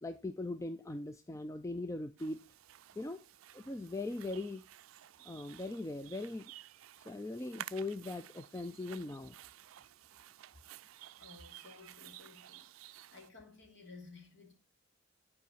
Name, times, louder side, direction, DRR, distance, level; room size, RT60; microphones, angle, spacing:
voice 1, 0.0-2.4 3.0-3.2 3.5-4.6 5.3-6.4 7.0-9.4, left 2 dB, 15° left, 0.3 m, -40 dB
sound 1, 2.2-13.3, right 13 dB, 85° right, 0.4 m, -53 dB
voice 2, 11.2-14.5, left 3 dB, 60° left, 3.0 m, -55 dB
10.5 x 4.8 x 4.0 m
head